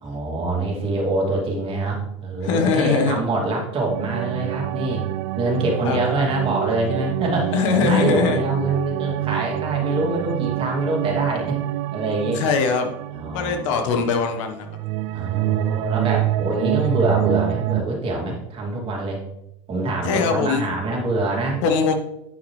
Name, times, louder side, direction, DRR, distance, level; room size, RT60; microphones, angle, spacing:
voice 1, 0.0-5.0 5.4-11.6 11.9-12.4 13.1-13.9 15.1-19.2 19.7-21.6, right 2 dB, 35° right, -1 dB, 2.6 m, -25 dB
voice 2, 2.4-3.2 5.8-6.0 7.5-8.4 12.3-12.9 13.3-14.7 20.0-20.7 21.6-21.9, left 5 dB, 70° left, 5 dB, 1.3 m, -21 dB
sound 1, 3.9-14.3 14.6-17.8, right 15 dB, 65° right, 0.4 m, -26 dB
9.1 x 6.0 x 3.2 m, 0.86 s
supercardioid pair, 110°, 16 cm